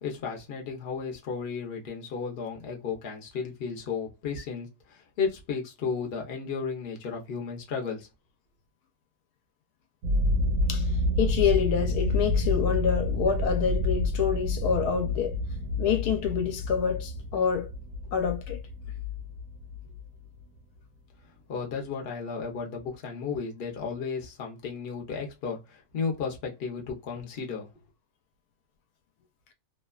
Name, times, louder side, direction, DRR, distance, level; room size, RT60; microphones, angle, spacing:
voice 1, 0.0-8.1 21.5-27.7, left 5 dB, 50° left, 0.7 m, -34 dB
sound 1, 10.0-20.1, left 2 dB, 85° right, 1.1 m, -29 dB
voice 2, 11.2-15.4 15.8-17.7 18.1-18.6, left 7 dB, 80° left, 1.1 m, -27 dB
2.8 x 2.2 x 2.3 m
omnidirectional pair, 1.7 m